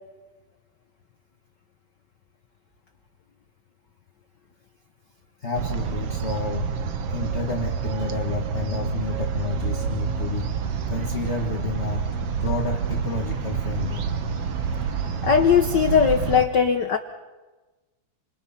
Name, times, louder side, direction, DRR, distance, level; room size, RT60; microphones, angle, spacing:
voice 1, 5.4-6.7 7.1-10.5 10.9-12.1 12.4-14.0, left 4 dB, 30° left, 2 dB, 1.3 m, -30 dB
sound 1, 5.5-16.5, right 7 dB, 60° right, 2.1 m, -28 dB
sound 2, 10.1-16.4, left 4 dB, 55° left, 5.3 m, -42 dB
voice 2, 15.2-17.0, left 7 dB, 80° left, 8 dB, 0.9 m, -19 dB
29.5 x 27.0 x 5.8 m, 1.2 s
omnidirectional pair, 3.4 m